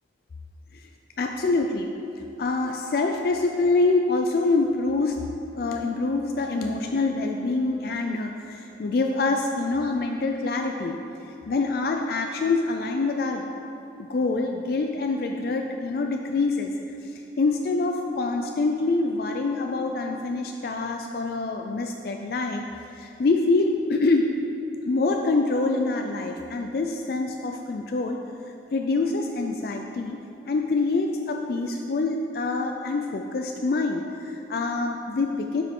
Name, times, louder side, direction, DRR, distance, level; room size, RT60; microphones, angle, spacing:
voice 1, 1.2-1.9 2.4-5.2 5.5-11.0 11.5-13.5 14.0-16.7 17.0-22.7 23.0-24.3 24.9-28.2 28.7-30.2 30.5-35.6, left 3 dB, 55° left, 3 dB, 0.4 m, -25 dB
9.0 x 6.0 x 3.7 m, 2.9 s
head